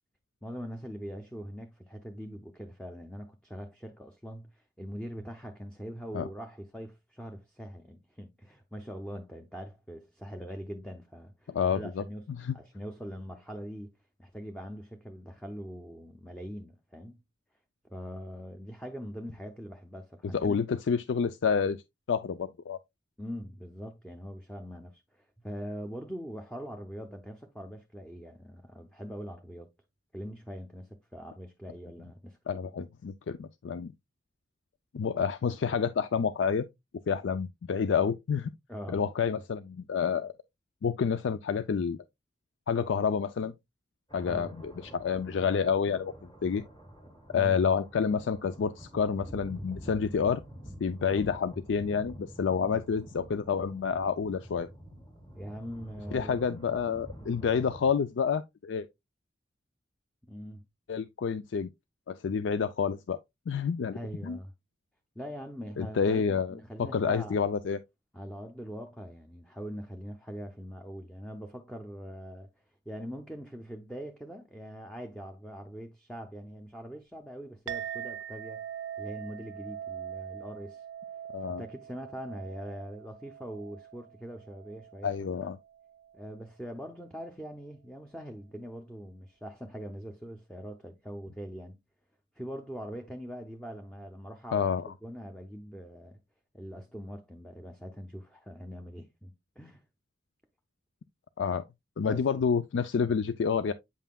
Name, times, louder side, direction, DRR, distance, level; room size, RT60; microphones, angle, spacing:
voice 1, 0.4-12.2 12.5-13.9 14.2-17.2 17.9-20.6 23.2-29.7 30.1-32.7 38.7-39.4 44.2-44.5 47.3-47.6 52.6-52.8 55.4-56.4 57.5-57.6 60.3-60.6 63.9-64.5 65.2-67.4 68.1-72.5 72.9-78.6 79.0-80.8 81.4-85.1 85.4-85.5 86.1-91.8 92.3-94.7 95.0-96.2 96.5-99.8 102.0-102.3, equal, 5° left, 0.6 m, -42 dB
voice 2, 11.5-12.0 12.4-12.6 20.3-21.8 22.1-22.8 32.5-33.9 34.9-36.7 37.1-38.5 38.9-40.3 40.8-42.0 42.7-43.5 44.1-46.6 47.3-50.4 50.8-54.7 56.1-58.9 60.9-61.7 62.1-63.2 63.5-64.4 65.8-67.8 81.3-81.6 85.0-85.6 94.5-94.8 101.4-101.6 102.0-103.7, left 6 dB, 80° left, 0.4 m, -29 dB
sound 1, 44.1-57.9, equal, 25° left, 1.8 m, -47 dB
Chink clink, 77.7-86.4, right 9 dB, 85° right, 0.5 m, -43 dB
8.3 x 5.6 x 2.3 m
head